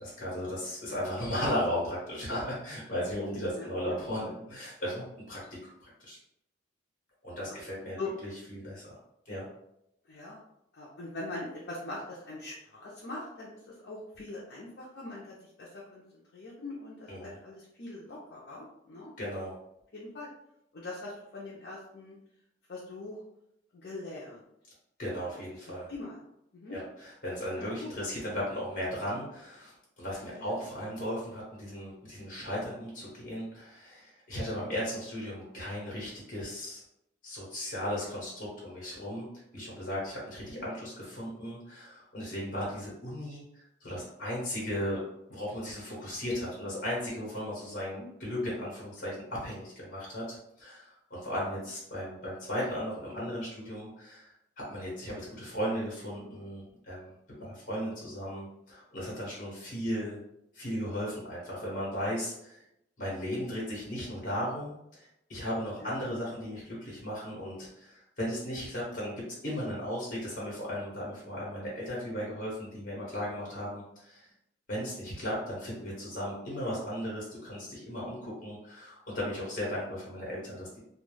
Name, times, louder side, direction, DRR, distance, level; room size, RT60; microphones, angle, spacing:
voice 1, 0.0-5.4 5.8-6.2 7.2-9.0 9.3-9.5 17.1-17.3 19.2-19.6 25.0-25.9 26.7-36.8 37.2-39.3 39.5-45.0 45.3-60.2 60.5-62.6 63.0-74.3 74.7-80.8, equal, 45° left, -6 dB, 1.0 m, -36 dB
voice 2, 3.6-4.0 7.5-7.6 8.0-8.1 10.1-10.4 10.7-16.0 16.3-19.1 19.9-20.3 20.7-22.2 22.7-23.2 23.7-24.4 25.2-25.3 25.9-26.1 26.5-26.8 27.5-27.9 30.3-30.6 40.5-40.6 47.9-48.1 65.8-66.0, left 2 dB, 60° left, -5 dB, 0.5 m, -42 dB
2.3 x 2.2 x 3.1 m, 0.82 s
head